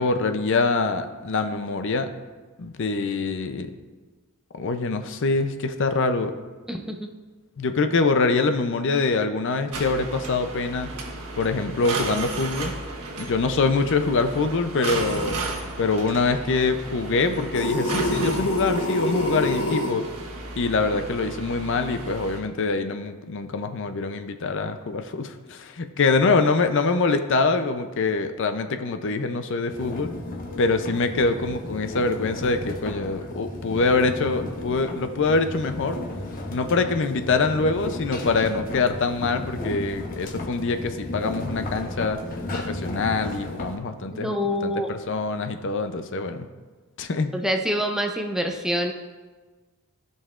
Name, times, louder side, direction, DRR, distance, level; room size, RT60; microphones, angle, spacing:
voice 1, 0.0-2.1 2.6-3.7 4.5-6.3 7.6-10.9 11.4-12.7 13.2-15.4 15.8-20.0 20.6-30.1 30.6-36.0 36.5-42.2 42.5-44.4 44.6-46.5 47.0-47.3, left 3 dB, 55° left, 8 dB, 0.5 m, -24 dB
voice 2, 6.7-7.1 44.1-44.9 47.3-48.9, equal, ahead, 3 dB, 0.5 m, -26 dB
sound 1, 9.7-22.4, right 2 dB, 90° right, 1.3 m, -34 dB
sound 2, 17.5-19.9, left 1 dB, 90° left, 1.0 m, -25 dB
sound 3, 29.7-43.8, left 2 dB, 40° left, 1.0 m, -34 dB
15.5 x 5.4 x 2.4 m, 1.3 s
head